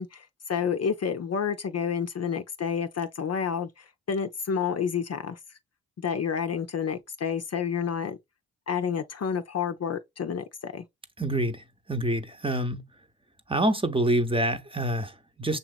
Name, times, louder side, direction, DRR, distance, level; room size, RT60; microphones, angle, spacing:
voice 1, 0.0-5.4 6.0-8.2 8.7-10.8, left 7 dB, 45° left, 0.6 m, -29 dB
voice 2, 11.2-12.9 13.5-15.6, right 1 dB, 15° right, 0.9 m, -27 dB
6.7 x 2.9 x 2.3 m
supercardioid pair, 50°, 37 cm